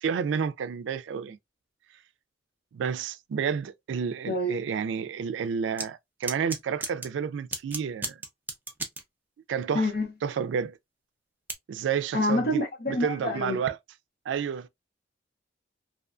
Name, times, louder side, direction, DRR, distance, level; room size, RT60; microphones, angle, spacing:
voice 1, 0.0-1.4 2.7-8.2 9.5-9.9 10.2-10.8 11.7-12.6 12.9-13.8 14.3-14.7, right 7 dB, 90° right, 0.3 m, -30 dB
sound 1, 5.8-5.9 6.2-7.1 7.5-9.0 11.5-11.6, right 3 dB, 10° right, 0.4 m, -33 dB
voice 2, 9.7-10.1 12.1-13.6, left 1 dB, 55° left, 0.8 m, -27 dB
2.6 x 2.2 x 2.4 m
head